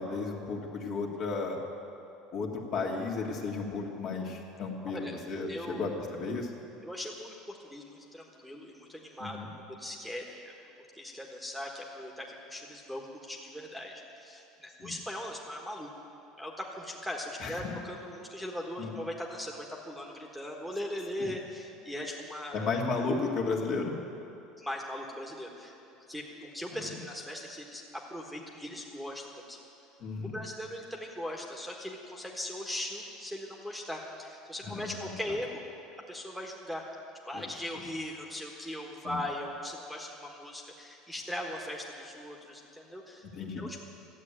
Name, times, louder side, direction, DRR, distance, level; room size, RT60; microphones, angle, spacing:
voice 1, 0.0-1.6 2.3-6.5 9.2-9.5 14.8-14.9 17.4-17.7 18.8-18.9 21.2-21.3 22.5-24.0 30.0-30.4 34.6-35.1 37.3-37.4 39.0-39.2 43.3-43.8, left 4 dB, 50° left, 0 dB, 2.0 m, -34 dB
voice 2, 4.9-5.2 5.5-5.8 6.8-10.5 10.9-15.9 16.4-22.7 24.6-25.7 26.1-29.6 30.2-35.6 36.1-36.8 37.3-43.8, left 1 dB, ahead, 0 dB, 1.4 m, -39 dB
13.5 x 8.2 x 9.9 m, 2.7 s
cardioid pair, 135°, 0 cm